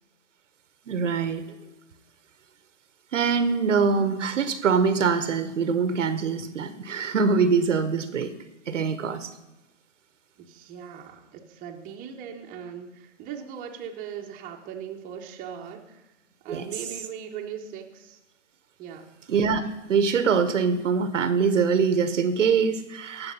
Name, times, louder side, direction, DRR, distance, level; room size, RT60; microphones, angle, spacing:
voice 1, 0.9-1.4 3.1-8.3 8.7-9.3 16.5-16.7 19.3-19.6 19.9-23.3, right 5 dB, 70° right, 11 dB, 1.2 m, -23 dB
voice 2, 10.4-16.1 16.4-18.2 18.8-19.1, right 8 dB, 20° right, 1 dB, 1.3 m, -39 dB
17.5 x 6.6 x 5.7 m, 1.0 s
hypercardioid pair, 130°, 38 cm